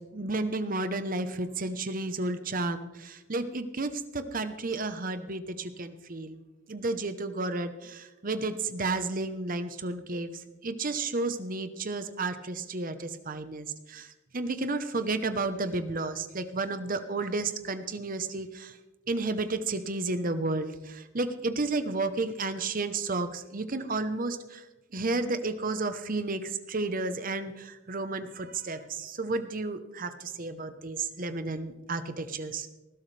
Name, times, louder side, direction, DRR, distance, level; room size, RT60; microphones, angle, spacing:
voice 1, 0.1-6.4 6.7-10.3 10.6-14.1 14.3-18.7 19.1-24.6 24.9-32.7, right 3 dB, 45° right, 10 dB, 1.0 m, -32 dB
19.0 x 12.0 x 3.4 m, 1.1 s
head